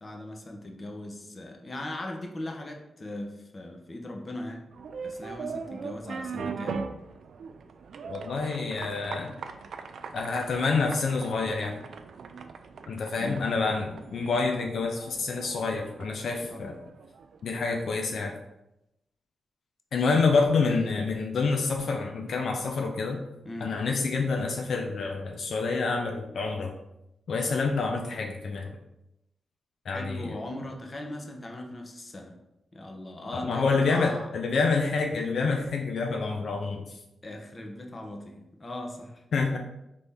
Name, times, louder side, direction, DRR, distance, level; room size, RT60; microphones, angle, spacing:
voice 1, 0.0-4.7 5.0-6.9 13.2-13.4 16.5-16.8 20.1-20.3 23.4-23.7 29.9-32.3 32.7-34.3 37.2-39.2, left 1 dB, 35° left, 2 dB, 0.7 m, -39 dB
sound 1, 4.7-17.5, right 5 dB, 75° right, 0.3 m, -40 dB
voice 2, 8.1-9.4 10.1-11.8 12.9-16.8 17.4-18.3 19.9-23.2 23.6-26.7 27.3-28.7 29.9-30.3 33.3-37.0 39.3-39.6, left 4 dB, 70° left, 2 dB, 0.5 m, -27 dB
4.1 x 3.4 x 3.4 m, 0.88 s
cardioid pair, 90°, 0 cm